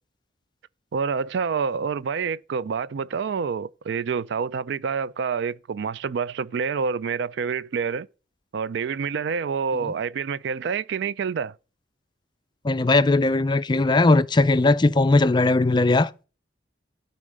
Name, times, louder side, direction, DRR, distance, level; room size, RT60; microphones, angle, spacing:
voice 1, 0.9-8.1 8.5-11.5, right 6 dB, 65° right, 0.4 m, -27 dB
voice 2, 12.6-16.1, left 2 dB, 25° left, 0.4 m, -19 dB
12.5 x 4.2 x 6.3 m
head